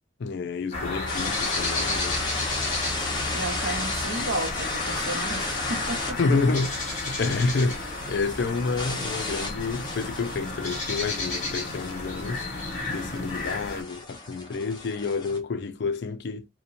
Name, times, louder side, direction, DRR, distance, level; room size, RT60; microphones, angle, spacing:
voice 1, 0.2-2.2 6.2-12.4 12.9-16.5, left 4 dB, 60° left, 0.4 m, -29 dB
sound 1, 0.7-13.8, left 2 dB, 40° left, 1.3 m, -32 dB
sound 2, 1.1-15.4, left 2 dB, 25° left, 0.8 m, -35 dB
voice 2, 3.3-6.2, right 2 dB, 90° right, 0.8 m, -33 dB
2.8 x 2.1 x 2.5 m
head